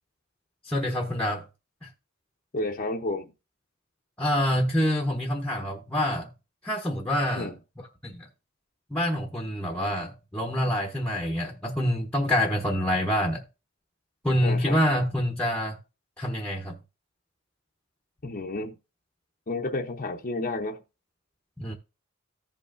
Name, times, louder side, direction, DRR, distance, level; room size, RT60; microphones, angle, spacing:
voice 1, 0.6-1.5 1.8-1.9 4.2-6.3 6.6-7.5 8.0-8.3 8.9-13.4 14.2-15.8 16.2-16.8 21.6-21.7, equal, 5° left, 0.9 m, -26 dB
voice 2, 2.5-3.3 7.3-7.6 14.4-14.8 18.2-18.8 19.5-20.8, left 2 dB, 40° left, 0.7 m, -31 dB
15.0 x 5.5 x 2.5 m
head